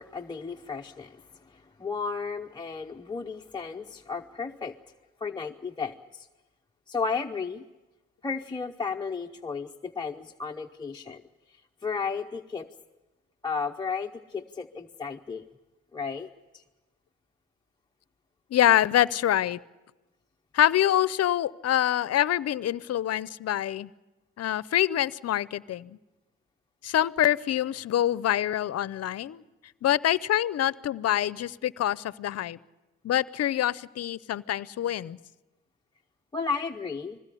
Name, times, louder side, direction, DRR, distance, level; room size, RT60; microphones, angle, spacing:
voice 1, 0.0-4.8 5.2-6.3 6.9-7.6 8.2-11.2 11.5-12.7 13.4-15.4 15.9-16.6 36.3-37.2, left 5 dB, 15° left, 2 dB, 0.7 m, -34 dB
voice 2, 18.5-19.6 20.5-23.9 24.4-26.0 26.8-29.4 29.8-32.6 33.0-35.2, left 12 dB, 55° left, 18 dB, 0.7 m, -25 dB
21.0 x 16.0 x 9.9 m, 1.1 s
cardioid pair, 90°, 30 cm